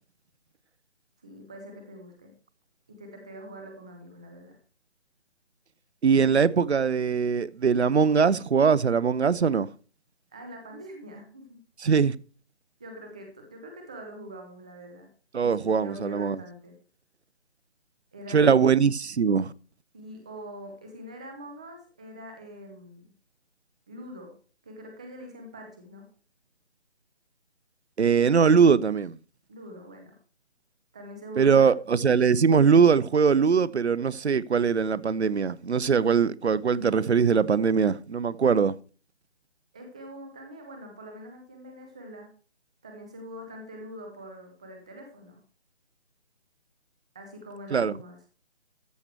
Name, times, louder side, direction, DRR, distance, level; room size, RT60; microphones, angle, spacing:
voice 1, 1.2-2.3 2.9-4.6 10.3-11.6 12.8-15.1 15.4-16.8 18.1-18.5 19.9-23.1 23.9-24.3 24.6-26.0 29.5-30.2 30.9-31.7 39.7-42.3 42.8-45.4 47.1-48.2, equal, 5° right, 0.5 m, -44 dB
voice 2, 6.0-9.7 11.8-12.1 15.3-16.4 18.3-19.5 28.0-29.2 31.4-38.8 47.7-48.0, right 6 dB, 80° right, 0.8 m, -21 dB
14.0 x 6.7 x 4.4 m
figure-of-eight pair, 155°, 33 cm